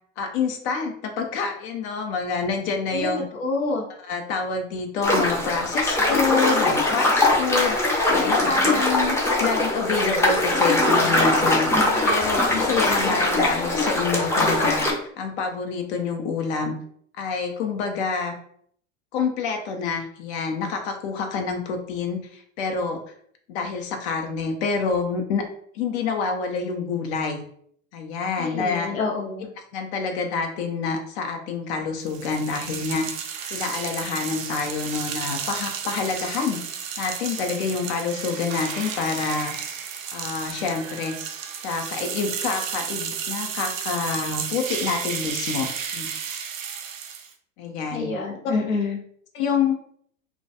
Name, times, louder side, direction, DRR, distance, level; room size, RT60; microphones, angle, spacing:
voice 1, 0.2-3.2 4.0-7.8 8.1-16.8 17.2-18.4 19.1-23.0 23.5-25.4 25.7-27.4 27.9-28.9 29.7-33.1 33.5-36.6 37.0-39.5 40.1-41.2 41.6-46.1 47.6-48.1 49.3-49.7, left 5 dB, 55° left, 4 dB, 0.5 m, -27 dB
voice 2, 2.9-3.8 28.4-29.5 47.9-49.0, left 4 dB, 85° left, 0 dB, 0.8 m, -27 dB
sound 1, 5.0-14.9, left 1 dB, 5° left, 0.5 m, -21 dB
sound 2, 32.1-47.3, right 7 dB, 80° right, 0.5 m, -32 dB
2.2 x 2.1 x 2.7 m, 0.63 s
hypercardioid pair, 90°, 39 cm